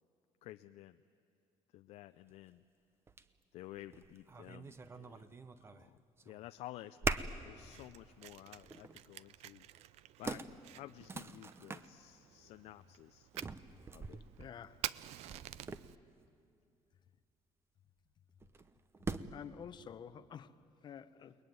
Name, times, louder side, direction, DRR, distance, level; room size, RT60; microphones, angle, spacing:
voice 1, 0.4-1.0 1.7-2.6 3.5-9.7 10.2-13.3 13.9-14.2 21.2-21.3, left 14 dB, 75° left, 9 dB, 0.6 m, -53 dB
sound 1, 2.3-2.4 3.1-3.3 3.7-5.9 6.2-6.6 7.0-7.5 8.0-8.1 8.6-9.0 9.8-9.9 10.2-11.9 13.3-16.2 18.4-19.5, right 4 dB, 20° right, 0.8 m, -43 dB
Fire, 7.6-16.0, right 13 dB, 70° right, 0.6 m, -49 dB
voice 2, 14.4-14.8 19.3-20.5 20.8-21.3, left 8 dB, 40° left, 12 dB, 0.9 m, -49 dB
30.0 x 20.5 x 9.5 m, 2.4 s
cardioid pair, 140°, 11 cm